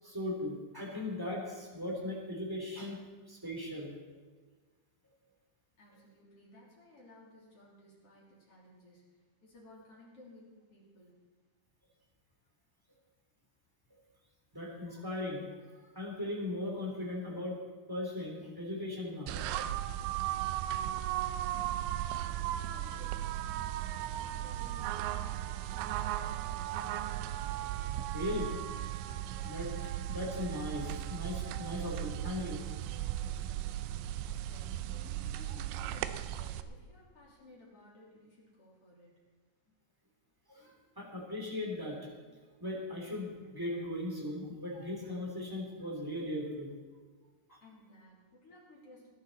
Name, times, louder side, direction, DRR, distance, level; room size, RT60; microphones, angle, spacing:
voice 1, 0.0-4.2 13.9-14.0 14.5-15.4 15.7-17.6 17.9-19.6 20.0-20.3 20.7-20.8 28.1-28.5 29.4-29.7 30.1-32.7 40.5-42.3 42.6-46.7 47.5-47.6, left 1 dB, 5° right, -2 dB, 2.0 m, -38 dB
voice 2, 5.8-9.1 9.4-11.1 21.5-26.1 34.2-39.1 47.6-49.1, left 1 dB, 35° left, -5 dB, 3.9 m, -57 dB
sound 1, 19.3-36.6, right 12 dB, 85° right, 2.7 m, -36 dB
19.5 x 11.5 x 4.1 m, 1.4 s
omnidirectional pair, 5.2 m